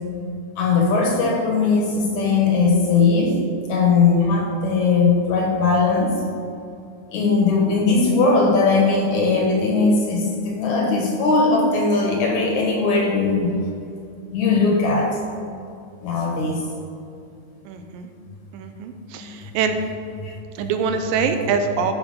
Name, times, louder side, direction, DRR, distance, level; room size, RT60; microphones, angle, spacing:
voice 1, 0.6-3.4 3.7-6.1 7.1-13.5 14.3-15.2 16.0-16.6 19.2-19.5 20.2-20.7 21.8-21.9, left 4 dB, 65° left, 0 dB, 2.4 m, -19 dB
voice 2, 17.7-18.1 18.5-19.8 20.6-21.9, right 6 dB, 85° right, 7 dB, 2.3 m, -24 dB
12.5 x 4.8 x 5.2 m, 2.5 s
omnidirectional pair, 4.0 m